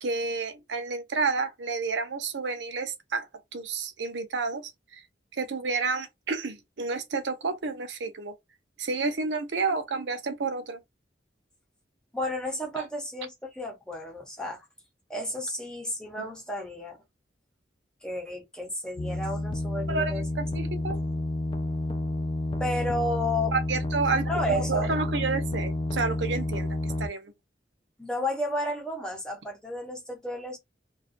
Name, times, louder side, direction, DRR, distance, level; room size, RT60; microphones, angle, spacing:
voice 1, 0.0-3.3 3.5-5.0 5.3-8.3 8.8-10.8 12.7-12.8 16.2-16.3 19.9-21.0 23.5-27.3, right 4 dB, 80° right, 0.7 m, -30 dB
voice 2, 12.1-14.6 15.1-17.0 18.0-20.2 22.6-23.5 24.3-24.9 28.0-30.6, left 1 dB, 5° left, 0.8 m, -32 dB
sound 1, 19.0-27.1, left 1 dB, 25° left, 0.3 m, -30 dB
2.4 x 2.2 x 2.5 m
head